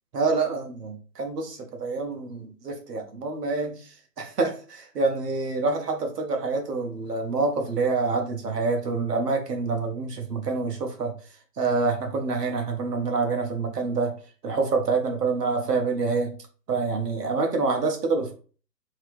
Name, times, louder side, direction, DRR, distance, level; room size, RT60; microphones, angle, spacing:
voice 1, 0.1-3.9 4.2-11.1 11.6-14.1 14.4-16.3 16.7-18.3, right 4 dB, 70° right, 4 dB, 1.0 m, -26 dB
3.0 x 2.8 x 3.4 m, 0.38 s
figure-of-eight pair, 140°, 50 cm